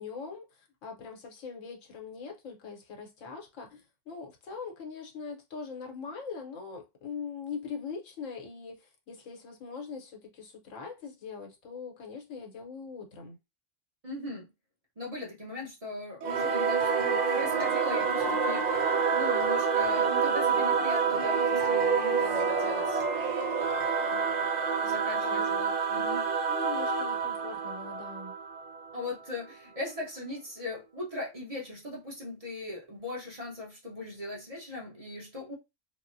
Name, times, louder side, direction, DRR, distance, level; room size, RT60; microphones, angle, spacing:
voice 1, 0.0-13.4 24.1-24.3 25.2-25.6 26.5-28.3, left 5 dB, 90° left, 1.2 m, -42 dB
voice 2, 14.0-14.5 15.0-23.0 24.1-24.5 24.8-26.3 28.9-35.5, left 2 dB, 30° right, 0.9 m, -39 dB
Singing / Musical instrument, 16.2-29.1, right 5 dB, 60° right, 0.4 m, -28 dB
3.6 x 2.1 x 2.5 m
omnidirectional pair, 1.3 m